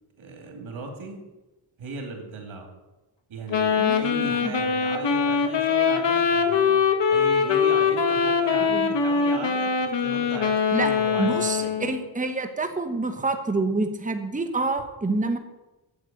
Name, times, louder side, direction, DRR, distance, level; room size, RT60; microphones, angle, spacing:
voice 1, 0.2-1.3 1.8-2.7 3.3-6.8 7.1-11.8, right 3 dB, 90° right, 3 dB, 2.7 m, -38 dB
Wind instrument woodwind instrument, 3.5-12.0, left 6 dB, 65° left, 1.5 m, -22 dB
voice 2, 3.8-4.6 8.6-8.9 10.7-10.9 11.2-15.4, right 3 dB, 15° right, 7 dB, 1.2 m, -27 dB
8.7 x 8.1 x 9.1 m, 1.1 s
cardioid pair, 75°, 47 cm